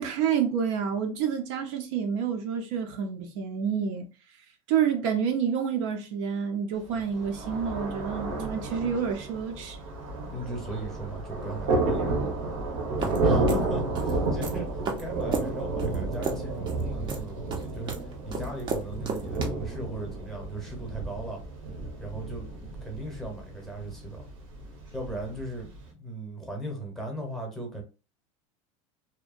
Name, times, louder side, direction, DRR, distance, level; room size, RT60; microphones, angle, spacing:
voice 1, 0.0-4.1 4.7-9.8, right 7 dB, 70° right, 0.6 m, -28 dB
Thunder, 6.9-25.8, right 2 dB, 90° right, 1.1 m, -31 dB
voice 2, 10.3-12.1 13.0-21.4 22.0-24.3 24.9-27.8, right 2 dB, ahead, 0.8 m, -37 dB
sound 1, 13.0-19.5, right 4 dB, 30° right, 0.5 m, -33 dB
2.7 x 2.1 x 2.4 m
supercardioid pair, 140°, 16 cm